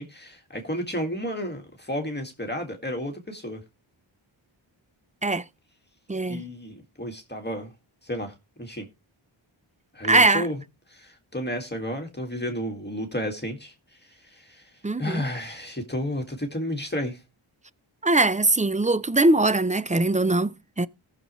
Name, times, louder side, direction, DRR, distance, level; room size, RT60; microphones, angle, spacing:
voice 1, 0.0-3.6 6.3-7.7 8.0-8.9 9.9-10.6 10.9-17.2, equal, 20° left, 1.9 m, -32 dB
voice 2, 6.1-6.4 10.1-10.4 14.8-15.2 18.0-20.9, right 2 dB, 15° right, 0.5 m, -21 dB
18.5 x 6.5 x 3.1 m
wide cardioid pair, 80°, 48 cm